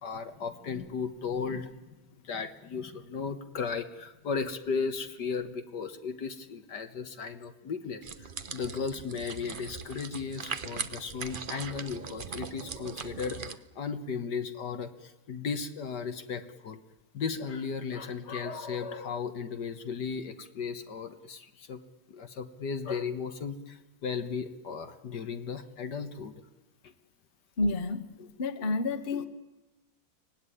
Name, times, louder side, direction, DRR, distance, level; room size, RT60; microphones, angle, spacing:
voice 1, 0.0-1.7 2.1-16.8 17.1-21.8 22.1-26.3 26.8-26.9 28.2-28.3 29.1-29.3, left 5 dB, 60° left, 1.8 m, -35 dB
sound 1, 8.0-13.6, right 5 dB, 40° right, 0.7 m, -40 dB
voice 2, 27.6-29.3, left 2 dB, 30° left, 1.3 m, -30 dB
24.5 x 18.5 x 9.9 m
omnidirectional pair, 2.2 m